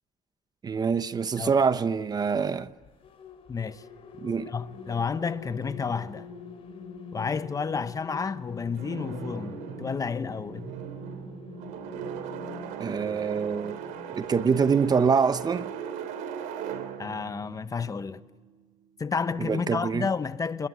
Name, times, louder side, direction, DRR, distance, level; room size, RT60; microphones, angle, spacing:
voice 1, 0.6-2.7 4.2-4.5 12.8-13.8 14.2-15.7 19.4-20.1, right 5 dB, 30° right, 0.9 m, -25 dB
sound 1, 2.7-14.9, left 5 dB, 45° left, 5.0 m, -46 dB
voice 2, 3.5-3.8 4.5-6.3 7.1-10.7 17.0-18.2 19.0-20.7, left 5 dB, 25° left, 0.9 m, -31 dB
sound 2, 8.7-18.7, right 8 dB, 90° right, 2.9 m, -39 dB
28.5 x 21.0 x 9.5 m
cardioid pair, 115°, 13 cm